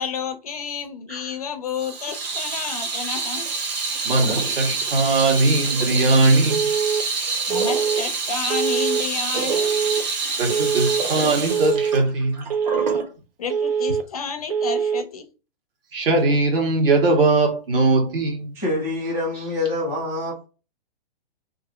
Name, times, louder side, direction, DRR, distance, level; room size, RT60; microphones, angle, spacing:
voice 1, 0.0-3.5 7.5-9.7 13.4-15.2, left 6 dB, 40° left, 0.4 m, -30 dB
Water tap faucet / Sink (filling or washing), 1.7-13.1, right 4 dB, 45° right, 0.9 m, -27 dB
voice 2, 4.0-6.7 10.4-12.4 15.9-18.5, right 2 dB, 70° right, 1.7 m, -20 dB
Telephone, 6.5-7.0 7.5-8.0 8.5-9.0 9.5-10.0 10.5-11.0 11.5-12.0 12.5-13.0 13.5-14.0 14.5-15.0, right 7 dB, 85° right, 0.7 m, -23 dB
voice 3, 18.5-20.5, left 2 dB, 10° right, 0.6 m, -26 dB
3.0 x 2.5 x 4.0 m
hypercardioid pair, 165°, 30 cm